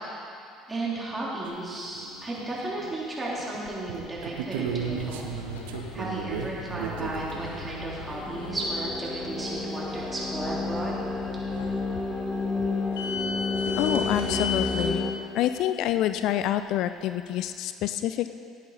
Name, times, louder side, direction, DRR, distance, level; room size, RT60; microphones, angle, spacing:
voice 1, 0.7-5.4 5.6-11.0, right 2 dB, 15° right, -6 dB, 3.5 m, -34 dB
sound 1, 1.5-1.6 1.9-3.0 3.4-7.7 10.3-10.4 10.6-10.7 11.7-11.8 12.4-12.5 16.1-16.2 16.4-16.8, right 7 dB, 65° right, 0.8 m, -35 dB
sound 2, 4.7-14.9, left 5 dB, 70° left, 0.9 m, -37 dB
sound 3, 7.5-15.1, left 3 dB, 5° left, 1.2 m, -31 dB
voice 2, 13.8-15.0 15.3-18.3, left 12 dB, 55° left, 11 dB, 0.3 m, -27 dB
17.5 x 8.3 x 4.2 m, 2.5 s
figure-of-eight pair, 55°, 0 cm